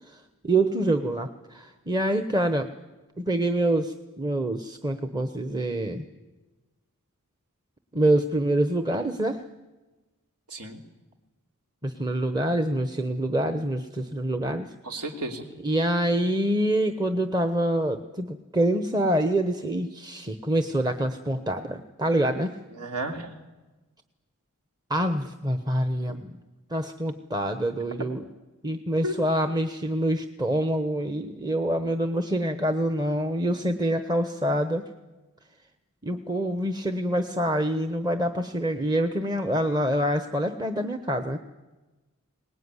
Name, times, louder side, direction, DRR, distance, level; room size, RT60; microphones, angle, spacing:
voice 1, 0.1-2.7 3.2-6.1 7.9-9.4 11.8-15.0 15.6-22.5 24.9-26.4 26.7-28.2 28.6-34.8 36.0-41.4, right 1 dB, 20° right, 8 dB, 1.0 m, -26 dB
voice 2, 10.5-10.8 14.8-15.5 22.8-23.3 26.1-26.2 29.0-29.1, right 1 dB, 85° right, 4 dB, 3.0 m, -33 dB
23.5 x 19.5 x 9.7 m, 1.2 s
head